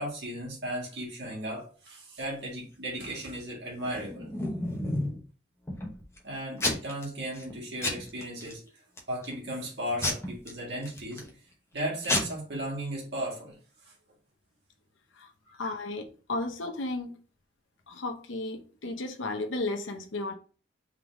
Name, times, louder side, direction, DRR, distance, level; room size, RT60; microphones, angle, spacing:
voice 1, 0.0-4.3 6.2-8.8 9.1-11.3 11.7-13.6 13.8-13.9 15.5-15.7, right 1 dB, 60° right, 1.7 m, -36 dB
Packing tape duct tape / Tearing, 3.8-5.2 5.7-6.2 6.6-7.0 7.4-7.5 7.8-8.5 9.0-9.3 10.0-11.3 11.8-11.9 12.0-12.2, left 1 dB, 15° left, 0.8 m, -31 dB
voice 2, 15.6-17.2 17.9-20.3, left 2 dB, 90° left, 0.8 m, -34 dB
3.7 x 3.5 x 3.5 m
head